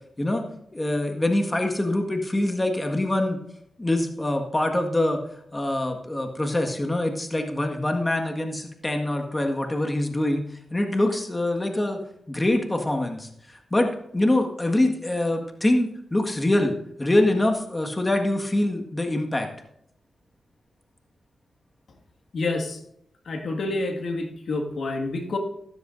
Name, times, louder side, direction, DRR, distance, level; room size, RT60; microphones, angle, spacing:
voice 1, 0.7-3.4 3.8-5.2 5.5-10.4 10.7-12.0 12.3-16.7 17.0-19.5, left 1 dB, 20° left, 3 dB, 1.7 m, -24 dB
voice 2, 22.3-22.8 23.3-25.4, left 2 dB, 65° left, 3 dB, 1.9 m, -28 dB
14.0 x 13.5 x 2.6 m, 0.73 s
cardioid pair, 70°, 0 cm